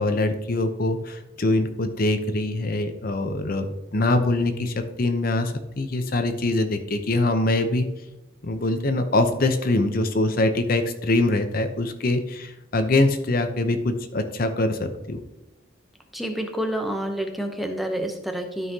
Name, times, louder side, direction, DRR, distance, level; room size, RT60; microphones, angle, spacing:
voice 1, 0.0-3.7 3.9-7.9 8.4-15.2, left 2 dB, 45° left, 8 dB, 0.7 m, -23 dB
voice 2, 16.1-18.7, right 1 dB, ahead, 3 dB, 0.7 m, -28 dB
12.5 x 5.6 x 2.8 m, 0.96 s
head